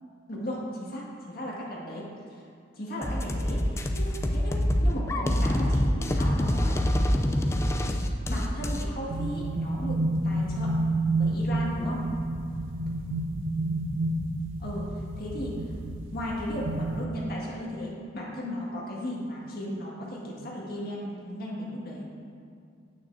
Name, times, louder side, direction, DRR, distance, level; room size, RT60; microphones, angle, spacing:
voice 1, 0.3-2.1 2.3-2.4 2.7-7.1 8.3-10.0 10.2-10.8 11.2-12.0 14.6-14.9 15.2-15.6 16.1-22.1, equal, 50° left, -5 dB, 1.9 m, -36 dB
sound 1, 3.0-8.9, left 1 dB, 15° left, 0.4 m, -25 dB
sound 2, 9.1-17.1, right 2 dB, 75° right, 0.6 m, -29 dB
9.5 x 9.1 x 2.7 m, 2.4 s
head